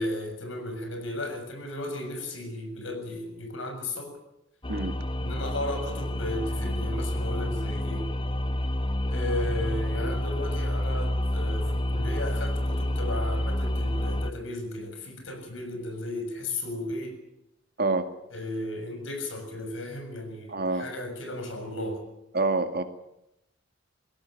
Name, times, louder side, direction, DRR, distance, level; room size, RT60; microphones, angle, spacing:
voice 1, 0.0-4.2 5.2-8.1 9.1-17.2 18.3-22.0, left 1 dB, 75° left, 6 dB, 6.9 m, -35 dB
sound 1, 4.6-14.3, left 1 dB, 25° left, 1.0 m, -28 dB
voice 2, 20.5-20.9 22.3-22.8, right 3 dB, 55° right, 7 dB, 2.1 m, -26 dB
22.0 x 17.0 x 9.0 m, 0.84 s
head